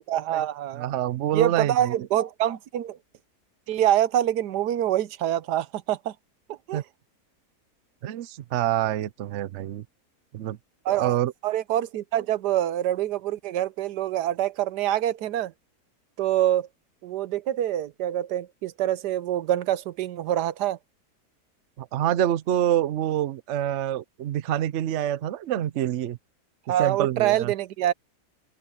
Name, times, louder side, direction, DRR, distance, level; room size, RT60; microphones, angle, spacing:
voice 1, 0.0-0.9 1.3-3.0 3.7-6.1 6.5-6.8 10.8-11.2 11.4-15.5 16.2-16.7 17.0-20.8 26.7-27.9, right 12 dB, 85° right, 1.3 m, -25 dB
voice 2, 0.8-2.0 6.7-6.8 8.0-9.8 10.3-10.6 10.9-11.3 21.8-26.2 26.8-27.5, right 12 dB, 60° right, 0.8 m, -26 dB
open air
omnidirectional pair, 1.7 m